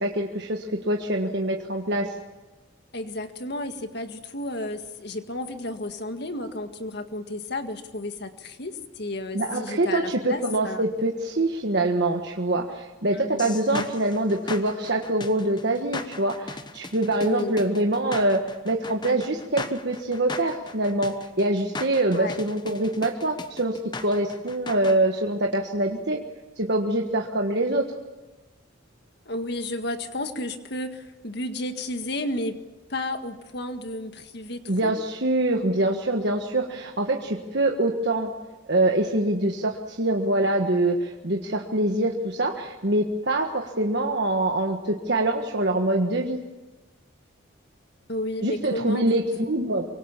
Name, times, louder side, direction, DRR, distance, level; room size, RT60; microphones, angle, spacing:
voice 1, 0.0-2.1 9.3-26.2 26.6-27.9 34.7-38.3 38.7-46.4 48.4-49.9, right 1 dB, 55° right, 2 dB, 1.5 m, -24 dB
voice 2, 2.9-10.8 13.1-13.8 17.2-17.5 22.1-22.4 29.3-32.6 32.9-34.9 48.1-49.5, left 1 dB, 55° left, 7 dB, 1.9 m, -32 dB
sound 1, 13.4-25.0, left 3 dB, 20° left, 1.1 m, -37 dB
24.5 x 24.0 x 7.3 m, 1.2 s
head